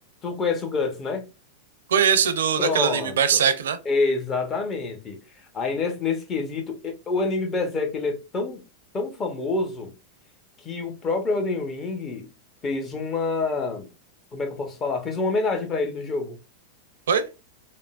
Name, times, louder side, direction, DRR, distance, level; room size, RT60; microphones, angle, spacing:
voice 1, 0.2-1.2 2.6-3.4 3.9-5.2 5.5-8.6 8.9-9.9 10.6-12.3 12.6-13.9 14.3-16.4, left 3 dB, 25° left, 0.8 m, -27 dB
voice 2, 1.9-3.8 17.1-17.3, right 7 dB, 85° right, 0.5 m, -21 dB
3.5 x 2.0 x 2.3 m
hypercardioid pair, 115°, 0 cm